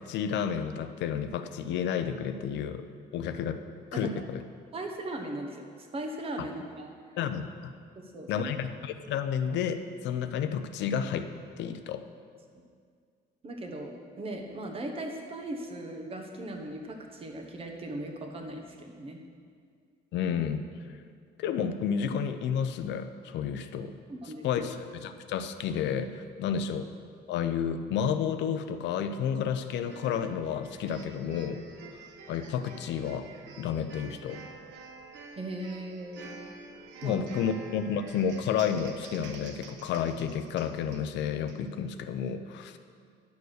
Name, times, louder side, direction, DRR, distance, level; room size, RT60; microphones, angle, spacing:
voice 1, 0.0-2.9 3.1-3.6 3.9-4.4 7.2-7.7 8.3-11.3 11.6-12.0 20.1-20.6 20.9-21.0 21.4-23.9 24.4-26.9 27.3-31.6 32.3-33.3 33.6-34.4 37.0-42.8, left 7 dB, 80° left, 9 dB, 0.7 m, -31 dB
voice 2, 4.7-6.9 8.0-8.5 13.4-19.2 24.1-24.6 26.4-26.6 35.4-36.4 37.0-37.2, right 1 dB, 30° right, 3 dB, 1.2 m, -38 dB
sound 1, 29.9-41.6, right 4 dB, 85° right, 1.1 m, -49 dB
10.5 x 7.0 x 6.5 m, 2.1 s
cardioid pair, 165°, 18 cm